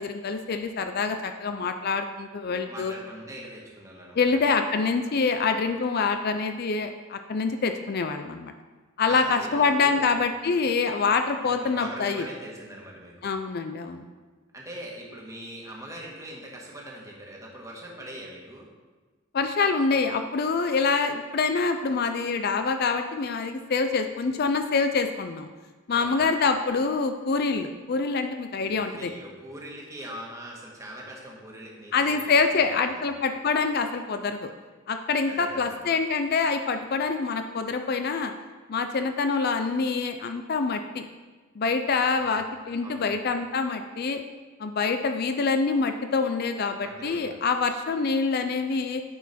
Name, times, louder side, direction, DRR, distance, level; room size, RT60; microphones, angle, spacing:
voice 1, 0.0-2.9 4.2-8.5 9.0-12.3 13.2-14.1 19.3-25.5 25.9-29.1 31.9-34.5 34.9-38.3 38.7-41.0 41.6-44.2 44.6-49.0, left 4 dB, 50° left, 7 dB, 0.5 m, -26 dB
voice 2, 2.7-4.4 9.1-10.1 11.4-13.3 14.5-18.7 25.9-26.2 28.5-33.0 35.3-35.8 42.2-42.3 42.8-43.1 46.8-47.4, right 1 dB, 15° right, -3 dB, 1.7 m, -42 dB
9.8 x 6.1 x 4.3 m, 1.3 s
head